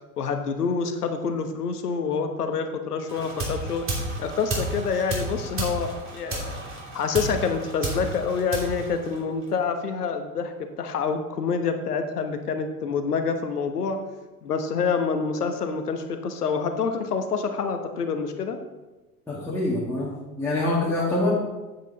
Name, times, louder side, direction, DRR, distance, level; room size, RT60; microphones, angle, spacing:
voice 1, 0.2-3.8 4.2-6.6 6.9-14.0 14.4-18.6, left 5 dB, 75° left, 7 dB, 1.2 m, -27 dB
sound 1, 3.1-9.6, right 1 dB, 25° right, 3.1 m, -32 dB
voice 2, 19.3-20.1 20.4-21.3, left 2 dB, 5° left, -8 dB, 2.0 m, -25 dB
8.7 x 8.1 x 4.0 m, 1.1 s
figure-of-eight pair, 85°, 46 cm